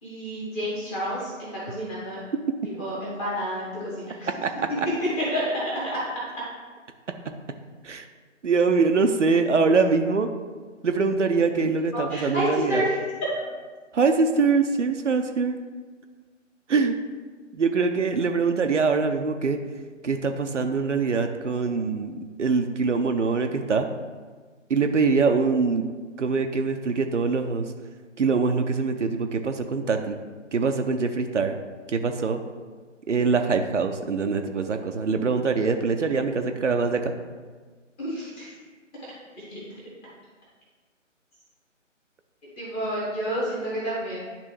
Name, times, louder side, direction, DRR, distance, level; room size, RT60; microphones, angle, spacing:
voice 1, 0.0-2.2 2.8-4.3 5.2-5.7 11.9-13.0 38.0-38.5 39.4-39.6 42.6-44.3, equal, 10° left, -8 dB, 1.1 m, -29 dB
voice 2, 4.4-4.9 7.8-8.0 8.4-10.3 10.8-12.8 13.9-15.6 16.7-16.9 17.5-19.6 20.0-23.9 24.7-25.9 26.2-27.7 28.2-30.2 30.5-31.5 31.9-32.4 33.1-37.1, right 4 dB, 70° right, 6 dB, 0.6 m, -23 dB
9.9 x 3.4 x 3.2 m, 1.4 s
figure-of-eight pair, 145°, 38 cm